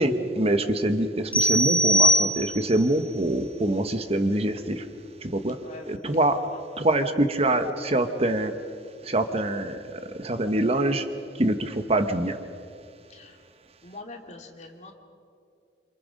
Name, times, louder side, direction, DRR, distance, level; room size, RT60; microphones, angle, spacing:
voice 1, 0.0-4.8 5.2-5.6 5.9-6.4 6.8-8.5 9.0-11.0 11.4-12.4, right 1 dB, 35° right, 8 dB, 1.1 m, -25 dB
sound 1, 1.3-2.9, equal, 10° left, 1.4 m, -21 dB
voice 2, 5.6-6.3 13.1-13.4 13.8-14.9, left 2 dB, 40° left, 2 dB, 2.7 m, -43 dB
28.5 x 27.0 x 5.3 m, 2.4 s
head